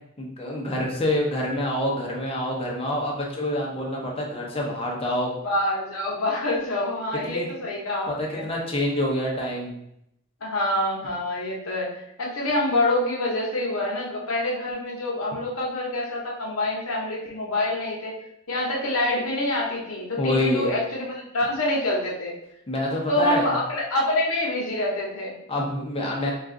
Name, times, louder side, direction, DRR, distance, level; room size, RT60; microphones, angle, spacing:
voice 1, 0.2-5.4 7.2-7.5 8.1-9.7 20.2-20.7 22.7-23.5 25.5-26.3, left 1 dB, 25° left, -2 dB, 0.6 m, -26 dB
voice 2, 5.4-8.4 10.4-11.9 12.2-18.1 18.5-22.3 23.1-25.3, left 1 dB, 75° left, -3 dB, 0.7 m, -26 dB
2.4 x 2.4 x 3.6 m, 0.79 s
head